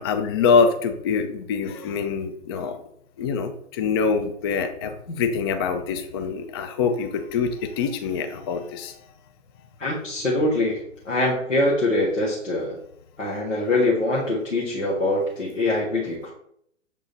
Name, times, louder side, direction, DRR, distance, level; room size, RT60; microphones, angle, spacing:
voice 1, 0.0-2.8 3.2-9.0, left 5 dB, 20° left, 7 dB, 0.4 m, -24 dB
voice 2, 9.8-10.8 11.0-12.8 13.2-16.3, left 2 dB, 85° left, -6 dB, 1.7 m, -23 dB
7.1 x 3.7 x 4.0 m, 0.72 s
figure-of-eight pair, 115°, 37 cm